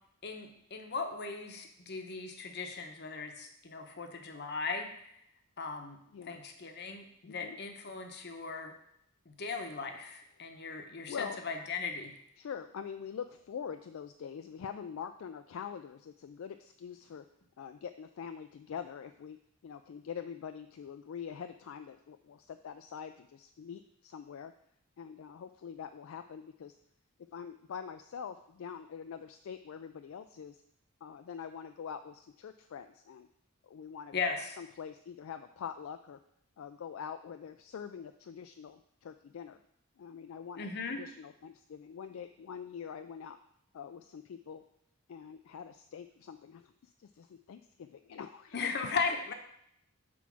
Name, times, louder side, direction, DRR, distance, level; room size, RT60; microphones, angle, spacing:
voice 1, 0.2-4.9 5.6-6.0 6.3-8.7 9.3-12.1 34.1-34.5 40.6-41.0 48.5-49.3, left 4 dB, 50° left, 5 dB, 0.9 m, -37 dB
voice 2, 7.2-7.6 11.1-11.4 12.4-17.2 17.6-19.4 19.6-24.5 25.0-26.7 27.3-30.6 31.0-33.3 33.6-36.2 36.6-39.6 40.0-43.4 43.7-44.6 45.1-48.7 49.3-49.4, left 7 dB, 65° left, 8 dB, 0.3 m, -44 dB
6.2 x 4.6 x 5.9 m, 0.74 s
head